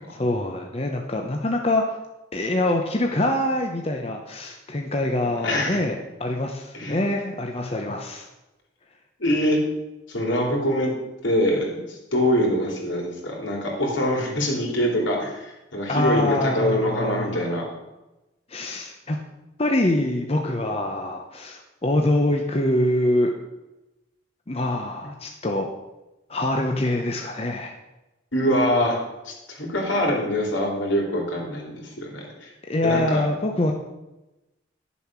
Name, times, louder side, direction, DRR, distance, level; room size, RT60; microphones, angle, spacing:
voice 1, 0.1-2.0 2.3-8.3 15.9-17.5 18.5-19.2 19.6-23.3 24.5-25.7 26.3-27.7 32.7-33.7, left 1 dB, 30° left, 2 dB, 0.8 m, -24 dB
voice 2, 5.4-5.8 6.7-7.0 9.2-9.6 10.1-10.9 11.2-17.6 28.3-32.5 32.8-33.2, equal, 75° left, -1 dB, 3.2 m, -24 dB
11.0 x 7.1 x 6.0 m, 1.0 s
head